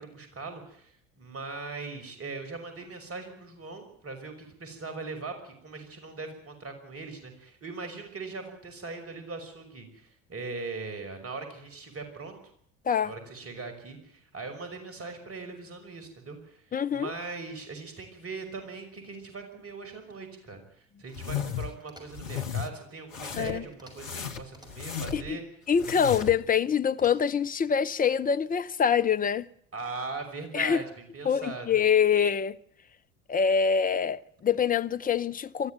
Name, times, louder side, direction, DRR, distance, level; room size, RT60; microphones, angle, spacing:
voice 1, 0.0-12.4 13.0-25.4 29.7-30.8 31.1-31.7, right 4 dB, 35° right, 5.9 m, -40 dB
voice 2, 16.7-17.1 23.4-23.6 25.1-25.4 25.7-29.5 30.5-30.8 31.2-32.6 33.3-35.7, left 7 dB, 20° left, 0.8 m, -25 dB
sound 1, 21.1-21.7 22.1-22.7 23.1-23.6 24.0-25.3 25.7-26.4, left 8 dB, 80° left, 1.3 m, -35 dB
sound 2, 21.8-22.4 23.7-24.2 24.4-25.1 26.9-27.5, equal, 10° right, 6.2 m, -54 dB
22.5 x 14.0 x 9.2 m
figure-of-eight pair, 60°, 39 cm